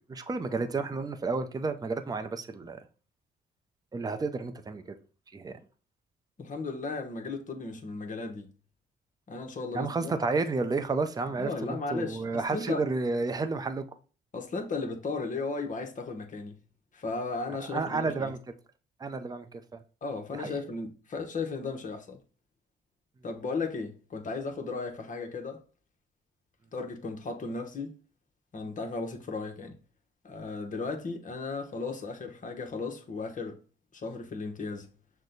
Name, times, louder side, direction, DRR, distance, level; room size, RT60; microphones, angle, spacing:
voice 1, 0.1-2.9 3.9-5.0 5.3-5.6 9.7-13.8 17.5-18.4 19.0-19.8 20.3-20.6, right 3 dB, 20° right, 0.5 m, -31 dB
voice 2, 6.4-8.5 9.3-10.2 11.4-12.8 14.3-16.5 16.9-18.3 20.0-22.2 23.2-25.6 26.7-27.9 28.5-29.7 30.2-33.6 33.9-34.9, left 3 dB, 40° left, 0.9 m, -35 dB
6.3 x 2.2 x 3.9 m
cardioid pair, 90°, 20 cm